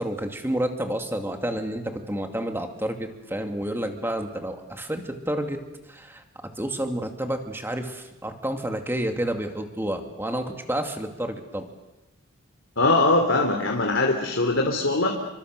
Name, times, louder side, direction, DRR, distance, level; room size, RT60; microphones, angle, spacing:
voice 1, 0.0-6.2 6.6-11.7, right 1 dB, 10° right, 5 dB, 2.6 m, -30 dB
voice 2, 12.8-15.1, left 2 dB, 65° left, 2 dB, 3.2 m, -21 dB
29.5 x 25.0 x 6.8 m, 0.93 s
head